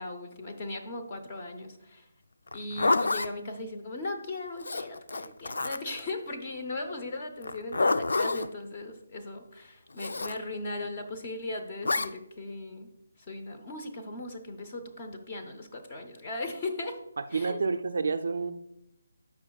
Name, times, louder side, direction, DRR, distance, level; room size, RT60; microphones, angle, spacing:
voice 1, 0.0-2.1 2.5-12.9 13.3-17.0 17.3-17.6, left 2 dB, 20° left, 4 dB, 0.7 m, -38 dB
Zipper (clothing), 2.5-3.3 4.6-6.0 7.4-8.5 10.0-10.4 11.8-12.1, left 3 dB, 70° left, 0.4 m, -28 dB
voice 2, 17.2-18.5, right 4 dB, 45° right, 9 dB, 0.4 m, -29 dB
15.0 x 5.7 x 2.3 m, 0.86 s
hypercardioid pair, 180°, 0 cm